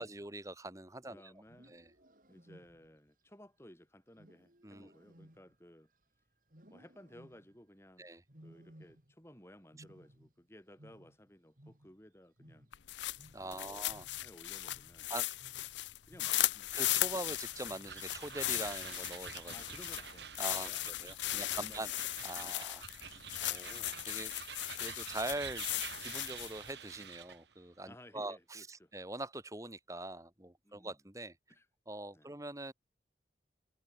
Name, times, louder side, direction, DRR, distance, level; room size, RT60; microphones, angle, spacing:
voice 1, 0.0-1.3 1.7-1.9 4.6-4.9 8.0-8.2 13.3-14.1 15.1-15.3 16.7-19.5 20.4-20.7 21.0-21.9 22.2-24.3 24.8-25.7 26.0-31.3 31.9-32.7, right 2 dB, 15° right, 1.7 m, -43 dB
voice 2, 1.1-1.7 2.3-5.9 6.7-8.1 8.4-12.7 13.4-13.8 14.2-15.1 15.7-16.7 17.1-17.2 19.5-21.9 22.4-22.7 23.1-23.3 27.8-28.9 30.6-31.0 31.5-31.7 32.1-32.3, left 1 dB, 15° left, 3.3 m, -58 dB
Wild animals, 1.4-3.1 4.2-6.0 6.5-7.7 8.3-9.3 9.6-12.1 12.4-17.3 17.6-18.1 18.5-19.0 19.7-20.1, equal, 45° right, 3.5 m, -61 dB
sound 1, 12.7-26.7, left 15 dB, 80° left, 0.6 m, -37 dB
sound 2, 17.3-27.4, right 7 dB, 70° right, 7.1 m, -48 dB
head